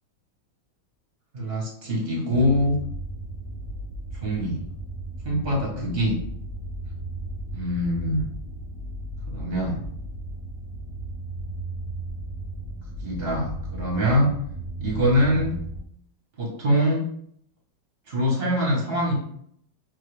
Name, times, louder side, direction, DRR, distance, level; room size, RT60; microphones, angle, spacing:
voice 1, 1.3-2.8 4.1-4.6 5.2-6.2 7.5-8.3 9.3-9.8 13.0-14.3 14.8-15.5 16.4-17.0 18.1-19.1, equal, 30° right, -3 dB, 1.5 m, -24 dB
sound 1, 2.3-15.8, right 1 dB, 35° left, 1.0 m, -35 dB
4.3 x 2.9 x 3.4 m, 0.68 s
omnidirectional pair, 2.2 m